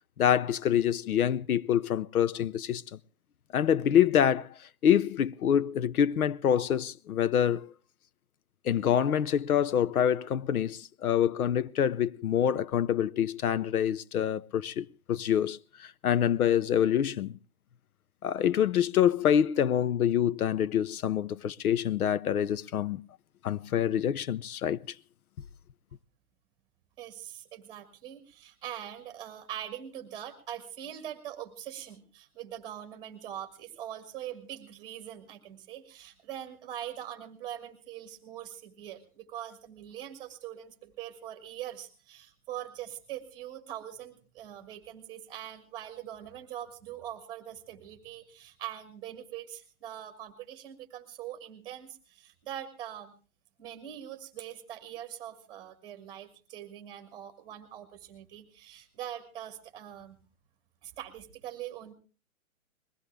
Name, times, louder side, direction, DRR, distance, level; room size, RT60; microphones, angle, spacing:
voice 1, 0.2-2.8 3.5-4.5 4.8-7.7 8.6-17.4 18.2-23.0 23.4-24.8, left 9 dB, 80° left, 0.7 m, -26 dB
voice 2, 27.0-53.1 53.6-60.2 60.8-61.9, right 11 dB, 10° right, 1.6 m, -42 dB
21.5 x 15.5 x 3.3 m
hypercardioid pair, 170°, 43 cm